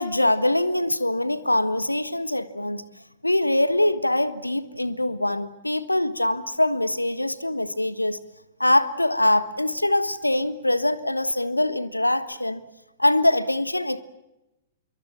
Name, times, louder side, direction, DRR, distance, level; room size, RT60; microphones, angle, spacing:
voice 1, 0.0-2.8 3.2-8.2 8.6-12.6 13.0-14.0, left 1 dB, 85° left, 1.4 m, -23 dB
26.5 x 23.5 x 7.4 m
figure-of-eight pair, 105°, 0 cm